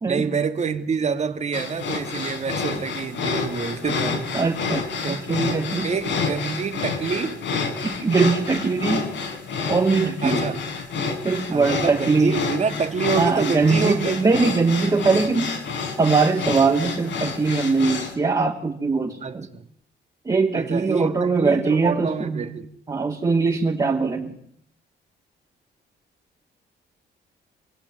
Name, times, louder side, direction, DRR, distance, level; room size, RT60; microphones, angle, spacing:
voice 1, 0.1-4.4 5.0-5.4 5.8-7.4 10.0-10.6 11.5-14.2 19.2-19.7 20.5-22.7, right 5 dB, 35° right, 2.5 m, -27 dB
sound 1, 1.5-18.1, left 4 dB, 80° left, 6.6 m, -29 dB
voice 2, 4.3-5.9 7.8-9.1 9.7-10.4 11.2-12.4 13.2-15.6 16.0-19.5 20.2-22.5 22.9-24.3, right 4 dB, 20° right, 3.0 m, -21 dB
28.5 x 20.0 x 9.8 m
cardioid pair, 150°, 19 cm